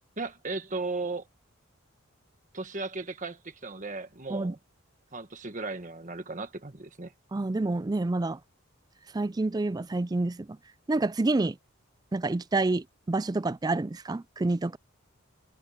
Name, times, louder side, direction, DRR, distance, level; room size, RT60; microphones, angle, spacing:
voice 1, 0.2-1.3 2.5-4.6 5.1-7.1, right 3 dB, 35° right, 1.5 m, -36 dB
voice 2, 7.3-8.4 9.1-10.6 10.9-11.6 12.1-14.8, right 2 dB, 20° right, 0.3 m, -28 dB
head